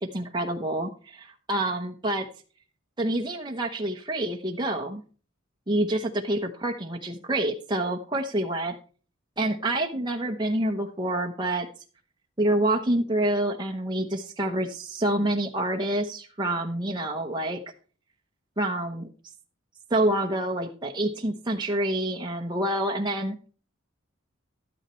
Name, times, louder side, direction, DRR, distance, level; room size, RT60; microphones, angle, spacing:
voice 1, 0.0-2.3 3.0-5.0 5.7-8.8 9.4-11.7 12.4-17.6 18.6-19.1 19.9-23.5, right 1 dB, 20° right, 1 dB, 1.0 m, -27 dB
12.0 x 9.8 x 3.2 m, 0.38 s
head